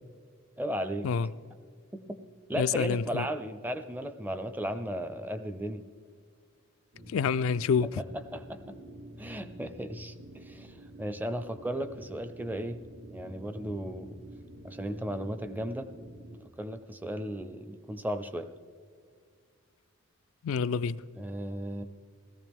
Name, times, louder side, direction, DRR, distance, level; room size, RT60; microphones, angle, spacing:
voice 1, 0.6-1.1 1.9-2.2 2.5-5.8 8.0-8.1 8.3-8.8 9.2-12.8 13.1-14.2 14.6-15.9 16.6-18.5 21.1-21.8, right 1 dB, 10° right, 0.5 m, -35 dB
voice 2, 2.6-3.3 7.1-7.9 20.4-21.0, left 6 dB, 65° left, 0.3 m, -27 dB
sound 1, 6.9-16.4, right 1 dB, 75° right, 1.3 m, -48 dB
18.0 x 14.5 x 3.6 m
head